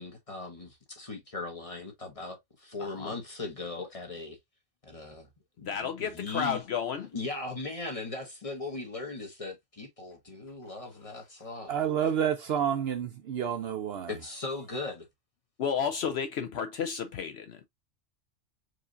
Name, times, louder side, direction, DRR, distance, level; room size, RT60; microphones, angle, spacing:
voice 1, 0.0-4.4 4.8-5.3 5.6-6.6 7.1-11.8 14.1-15.1, left 3 dB, 30° left, 1.4 m, -38 dB
voice 2, 2.8-3.1 5.7-7.1 15.6-17.7, left 7 dB, 65° left, 0.8 m, -32 dB
voice 3, 11.7-14.1, right 8 dB, 65° right, 0.7 m, -29 dB
4.7 x 3.1 x 2.4 m
omnidirectional pair, 1.3 m